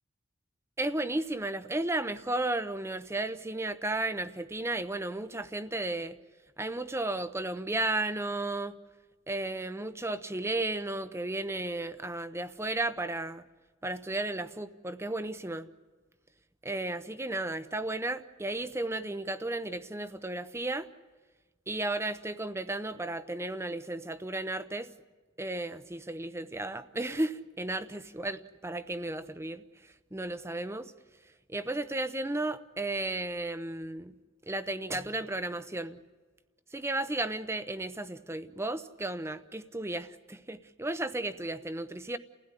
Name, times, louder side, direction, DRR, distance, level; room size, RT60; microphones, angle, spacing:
voice 1, 0.8-6.2 6.6-8.8 9.3-13.4 13.8-15.7 16.6-20.9 21.7-24.9 25.4-29.6 30.1-30.9 31.5-34.1 34.5-36.0 36.7-42.2, right 2 dB, 15° right, 12 dB, 0.8 m, -34 dB
29.5 x 16.5 x 9.9 m, 1.3 s
head